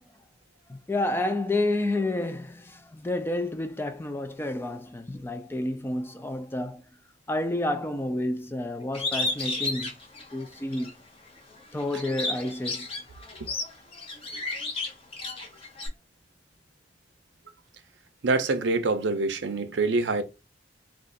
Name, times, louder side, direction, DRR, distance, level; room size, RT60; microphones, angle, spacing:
voice 1, 0.7-6.8 7.3-9.9 10.3-10.9 11.7-12.9, left 1 dB, 10° left, 0.3 m, -30 dB
Bird, 8.9-10.9 11.4-15.9, left 2 dB, 30° left, 0.8 m, -32 dB
voice 2, 18.2-20.2, right 3 dB, 70° right, 0.5 m, -25 dB
2.5 x 2.4 x 3.7 m
head